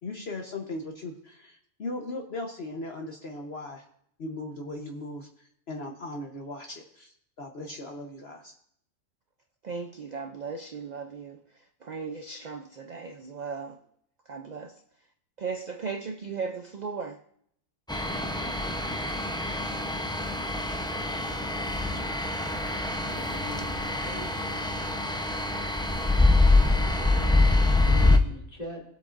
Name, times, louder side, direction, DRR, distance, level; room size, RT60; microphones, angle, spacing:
voice 1, 0.0-3.8 4.2-5.3 5.7-8.5, left 2 dB, 50° left, 1 dB, 1.2 m, -38 dB
voice 2, 9.6-13.8 14.3-14.8 15.4-17.2, right 5 dB, 50° right, 6 dB, 0.5 m, -37 dB
sound 1, 17.9-28.2, left 2 dB, 5° left, 0.4 m, -25 dB
voice 3, 23.0-24.8 26.3-28.8, equal, 30° left, -3 dB, 2.7 m, -43 dB
21.0 x 8.2 x 2.5 m, 0.69 s
omnidirectional pair, 1.4 m